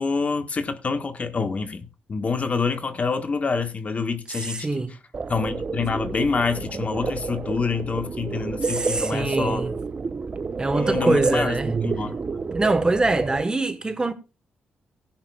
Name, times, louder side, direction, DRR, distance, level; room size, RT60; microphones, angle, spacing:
voice 1, 0.0-4.7 5.3-9.6 10.7-12.2, left 4 dB, 40° left, 1.4 m, -27 dB
voice 2, 4.3-4.9 8.6-9.8 10.6-11.7 12.5-14.1, right 2 dB, 25° right, 1.2 m, -24 dB
sound 1, 5.1-13.4, right 4 dB, 40° right, 0.7 m, -29 dB
16.5 x 10.5 x 2.3 m
cardioid pair, 85°, 4 cm